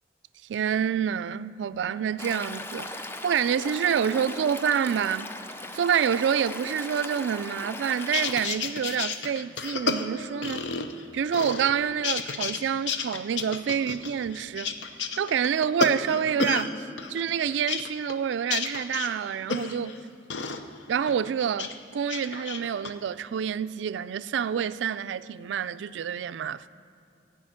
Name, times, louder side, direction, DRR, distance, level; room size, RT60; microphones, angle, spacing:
voice 1, 0.5-5.3 5.7-10.6 11.1-14.7 15.2-16.8 17.1-20.0 20.9-26.7, right 8 dB, 80° right, 0.3 m, -27 dB
Stream, 2.2-8.5, left 2 dB, 15° left, 0.5 m, -38 dB
sound 1, 8.0-11.0 11.3-12.6 12.9-16.7 17.0-20.0 20.3-20.6 21.1-21.7 22.0-22.9, left 4 dB, 80° left, 0.7 m, -31 dB
14.5 x 5.5 x 8.7 m
head